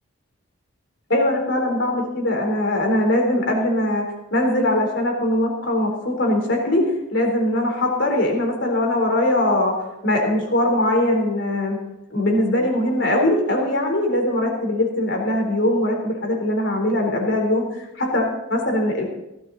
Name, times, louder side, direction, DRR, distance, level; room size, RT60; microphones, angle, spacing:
voice 1, 1.1-4.0 4.3-6.8 7.1-9.7 10.0-11.8 12.1-19.0, left 1 dB, 55° left, 1 dB, 4.1 m, -21 dB
18.0 x 12.0 x 4.2 m, 0.92 s
head